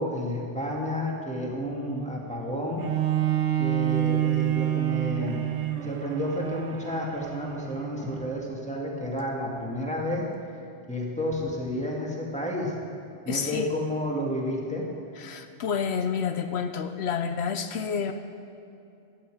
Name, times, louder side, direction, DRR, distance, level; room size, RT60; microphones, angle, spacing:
voice 1, 0.0-2.8 3.6-5.5 5.8-10.2 10.9-12.7 13.2-14.9, left 1 dB, 5° left, -2 dB, 2.1 m, -31 dB
Bowed string instrument, 2.8-8.4 9.1-9.2, right 12 dB, 85° right, 1.2 m, -28 dB
voice 2, 13.3-13.7 15.2-18.1, left 6 dB, 70° left, 8 dB, 0.9 m, -29 dB
15.5 x 11.5 x 4.9 m, 2.6 s
omnidirectional pair, 1.2 m